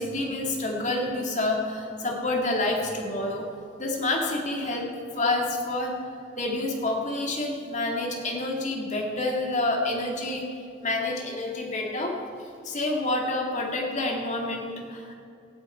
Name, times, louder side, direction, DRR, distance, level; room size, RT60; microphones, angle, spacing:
voice 1, 0.0-3.5 3.8-4.9 5.1-5.9 6.4-10.4 10.8-12.2 12.6-15.1, left 2 dB, 40° left, 0 dB, 2.4 m, -28 dB
17.5 x 12.0 x 4.5 m, 2.5 s
head